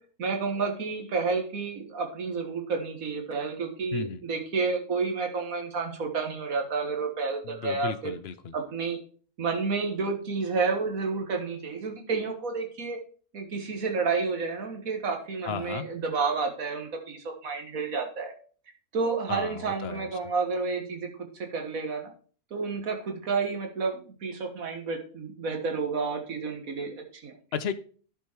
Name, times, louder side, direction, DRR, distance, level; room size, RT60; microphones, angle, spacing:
voice 1, 0.2-8.1 8.5-9.0 9.4-13.0 13.3-18.3 18.9-21.1 21.3-22.1 22.5-27.3, right 4 dB, 70° right, 3 dB, 2.0 m, -30 dB
voice 2, 3.9-4.2 7.4-8.5 15.4-15.9 19.3-20.1 27.5-27.7, left 7 dB, 55° left, 12 dB, 0.8 m, -34 dB
11.0 x 5.0 x 4.5 m, 0.41 s
omnidirectional pair, 1.5 m